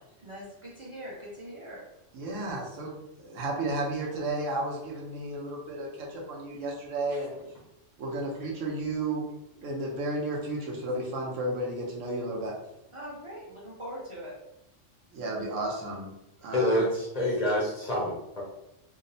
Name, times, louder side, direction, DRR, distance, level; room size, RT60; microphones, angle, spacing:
voice 1, 0.2-1.8 12.9-14.3, equal, 40° right, -5 dB, 0.5 m, -42 dB
voice 2, 2.1-7.3 8.0-9.2 9.6-12.5 15.1-16.1 16.4-16.9, right 2 dB, 85° right, -1 dB, 1.0 m, -33 dB
voice 3, 16.5-18.4, left 1 dB, 55° left, -5 dB, 0.4 m, -27 dB
2.8 x 2.0 x 2.6 m, 0.84 s
omnidirectional pair, 1.3 m